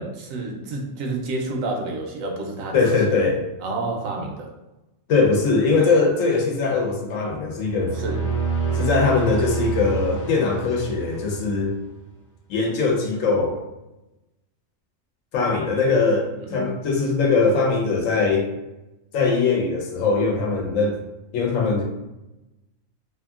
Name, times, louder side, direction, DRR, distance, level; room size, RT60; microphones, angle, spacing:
voice 1, 0.0-2.8 3.6-4.5 8.0-8.2 16.3-16.7, right 2 dB, 85° right, 1 dB, 1.0 m, -29 dB
voice 2, 2.7-3.4 5.1-7.9 8.7-11.8 12.5-13.6 15.3-18.5 19.1-21.0 21.3-21.8, left 4 dB, 75° left, 0 dB, 1.0 m, -21 dB
sound 1, 7.5-11.9, right 4 dB, 45° left, 0.5 m, -28 dB
2.8 x 2.5 x 2.4 m, 0.97 s
omnidirectional pair, 1.4 m